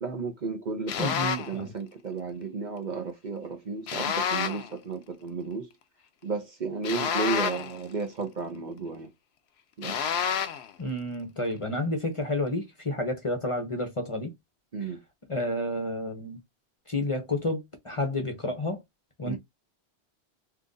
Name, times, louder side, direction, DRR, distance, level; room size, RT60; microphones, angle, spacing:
voice 1, 0.0-1.1 1.5-5.7 6.2-9.1 9.8-10.0 14.7-15.0 19.2-19.4, right 4 dB, 45° right, 0.8 m, -33 dB
sound 1, 0.9-1.6 3.9-4.7 6.8-7.8 9.8-10.7, left 7 dB, 75° left, 0.8 m, -29 dB
voice 2, 1.0-1.7 10.8-14.3 14.8-14.9 15.3-16.4 16.9-18.8 19.2-19.4, left 1 dB, 30° left, 0.8 m, -30 dB
2.8 x 2.5 x 3.8 m
omnidirectional pair, 1.1 m